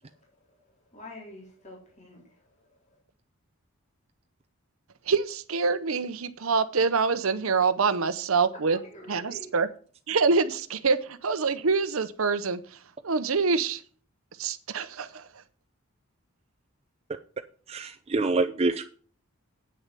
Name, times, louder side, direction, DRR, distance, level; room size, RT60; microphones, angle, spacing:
voice 1, 0.0-3.0 8.7-9.5, left 1 dB, 35° left, 3.4 m, -48 dB
voice 2, 5.0-8.8 9.1-9.7 10.1-13.8 14.4-15.4, right 4 dB, 70° right, 0.8 m, -26 dB
voice 3, 17.7-18.9, right 3 dB, 30° right, 0.5 m, -26 dB
8.7 x 6.6 x 7.5 m
head